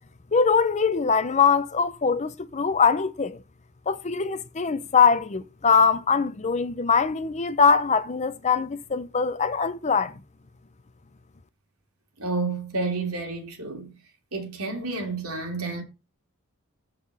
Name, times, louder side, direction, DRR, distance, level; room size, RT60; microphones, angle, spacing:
voice 1, 0.3-3.4 3.9-10.2, left 5 dB, 30° left, 0.6 m, -22 dB
voice 2, 12.2-13.9 14.3-15.8, right 3 dB, 75° right, 3.2 m, -30 dB
7.8 x 7.3 x 4.8 m
head